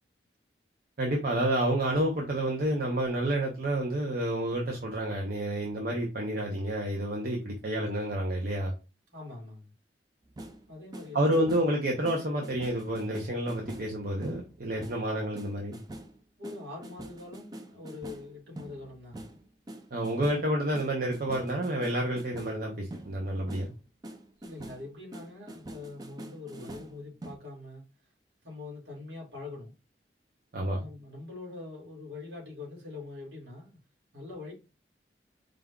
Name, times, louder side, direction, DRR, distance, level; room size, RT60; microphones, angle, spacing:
voice 1, 1.0-8.7 11.1-15.8 19.9-23.7 30.5-30.8, right 1 dB, 55° right, 0.8 m, -29 dB
voice 2, 9.1-9.7 10.7-11.5 16.4-19.3 24.4-27.8 28.4-29.7 30.8-33.8 34.1-34.5, left 3 dB, 70° right, 2.2 m, -44 dB
sound 1, 10.2-11.8 12.0-23.8 24.0-27.4, right 1 dB, 20° right, 0.4 m, -45 dB
5.1 x 2.3 x 3.6 m
head